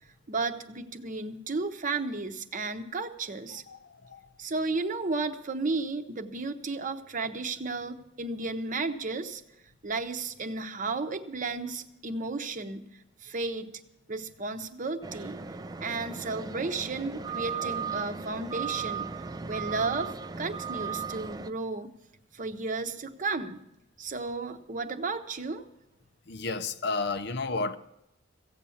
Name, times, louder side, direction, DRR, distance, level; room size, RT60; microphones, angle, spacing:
voice 1, 0.3-3.6 4.4-9.4 9.8-12.9 13.2-13.7 14.1-15.4 15.8-19.1 19.5-20.1 20.4-21.9 22.3-23.6 24.0-25.7, right 3 dB, 45° right, 0.8 m, -33 dB
voice 2, 3.7-4.2 26.3-27.8, left 3 dB, 60° left, 0.7 m, -32 dB
sound 1, 15.0-21.5, right 6 dB, 20° right, 0.4 m, -36 dB
15.5 x 8.4 x 7.0 m
head